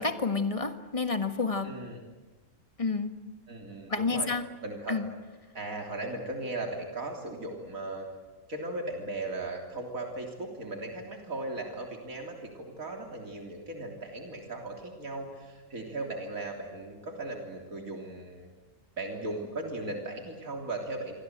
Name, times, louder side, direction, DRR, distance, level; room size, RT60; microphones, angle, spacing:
voice 1, 0.0-1.8 2.8-3.3 3.9-4.5 4.9-5.1, left 4 dB, 25° left, 8 dB, 1.7 m, -30 dB
voice 2, 1.6-2.0 3.5-4.3 4.6-5.0 5.5-8.1 8.5-18.5 19.0-21.2, right 2 dB, 80° right, 2 dB, 3.8 m, -37 dB
28.0 x 24.5 x 8.1 m, 1.3 s
omnidirectional pair, 1.4 m